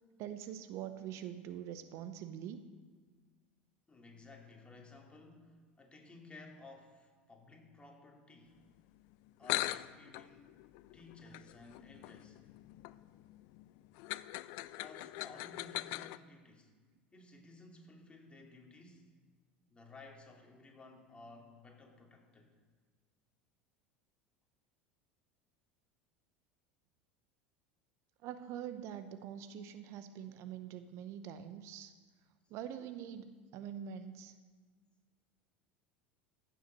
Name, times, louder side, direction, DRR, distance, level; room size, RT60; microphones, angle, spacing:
voice 1, 0.2-2.6 28.2-32.0 32.5-34.4, right 9 dB, 55° right, 10 dB, 0.8 m, -44 dB
voice 2, 3.9-8.6 9.4-10.5 10.9-12.4 14.8-16.7 17.1-19.1 19.7-22.5, left 3 dB, 20° left, 0 dB, 2.7 m, -56 dB
sound 1, 9.1-9.2 9.4-16.2, left 18 dB, 60° left, 0.4 m, -41 dB
15.0 x 7.0 x 6.3 m, 1.5 s
hypercardioid pair, 75°, 6 cm